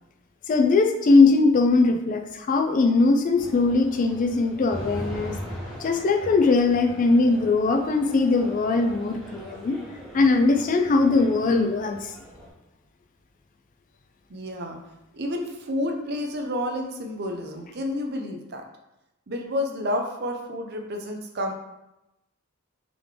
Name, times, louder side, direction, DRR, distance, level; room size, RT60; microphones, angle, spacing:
voice 1, 0.5-5.4 5.8-9.8 10.1-12.0, left 3 dB, 40° left, 6 dB, 0.3 m, -20 dB
sound 1, 3.4-12.5, equal, ahead, 1.1 m, -40 dB
voice 2, 14.3-14.8 15.1-18.6 19.3-21.5, left 1 dB, 50° right, 3 dB, 0.6 m, -30 dB
3.7 x 3.2 x 3.6 m, 0.92 s
head